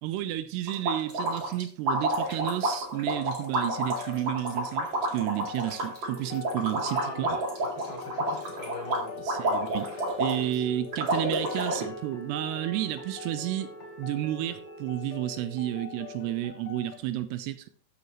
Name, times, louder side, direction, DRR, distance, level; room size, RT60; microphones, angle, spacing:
voice 1, 0.0-7.4 9.2-9.9 10.2-13.7 14.0-17.7, right 13 dB, 85° right, 2.6 m, -31 dB
sound 1, 0.7-10.5 10.9-11.9, right 1 dB, 40° right, 2.0 m, -29 dB
sound 2, 3.6-17.0, left 8 dB, 55° left, 2.1 m, -45 dB
sound 3, 6.0-16.4, equal, ahead, 2.0 m, -45 dB
voice 2, 6.8-7.4 7.7-9.3 10.4-10.9, left 1 dB, 30° left, 4.6 m, -40 dB
14.0 x 6.7 x 3.0 m
omnidirectional pair, 4.9 m